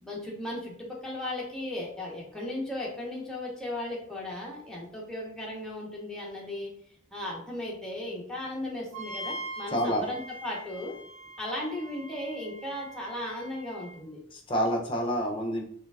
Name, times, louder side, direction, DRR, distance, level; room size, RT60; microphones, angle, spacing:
voice 1, 0.0-6.7 7.1-11.0 11.4-14.2, left 1 dB, 5° left, -4 dB, 1.1 m, -36 dB
Wind instrument woodwind instrument, 8.9-13.9, right 1 dB, 70° right, 1.6 m, -42 dB
voice 2, 9.7-10.1 14.3-15.6, equal, 25° left, 2 dB, 0.8 m, -28 dB
3.9 x 3.3 x 3.5 m, 0.62 s
head